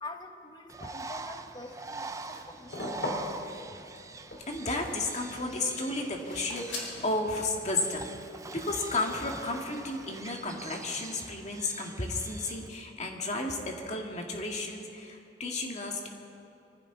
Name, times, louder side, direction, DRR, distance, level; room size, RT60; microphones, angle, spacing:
voice 1, 0.0-3.4, left 2 dB, 25° left, 6 dB, 1.1 m, -45 dB
Bird, 0.7-12.7, right 3 dB, 20° right, 0.5 m, -44 dB
sound 1, 1.7-7.1, left 1 dB, 80° left, 3.4 m, -39 dB
voice 2, 4.5-8.1 8.5-16.1, left 2 dB, 40° left, 1 dB, 2.0 m, -33 dB
24.5 x 15.0 x 3.9 m, 2.7 s
head